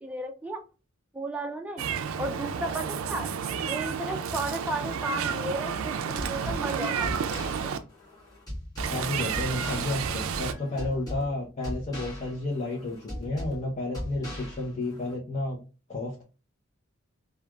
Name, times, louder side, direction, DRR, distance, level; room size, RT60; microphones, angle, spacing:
voice 1, 0.0-0.6 1.1-1.8 2.2-3.3 3.7-7.7, right 2 dB, 5° right, 4 dB, 0.4 m, -34 dB
Meow, 1.8-7.8 8.8-10.5, right 7 dB, 90° right, 0.4 m, -31 dB
sound 1, 6.2-15.1, left 1 dB, 20° left, 1.4 m, -39 dB
voice 2, 8.9-15.6 15.9-16.2, left 2 dB, 35° left, -4 dB, 0.7 m, -32 dB
3.2 x 2.3 x 2.3 m, 0.33 s
head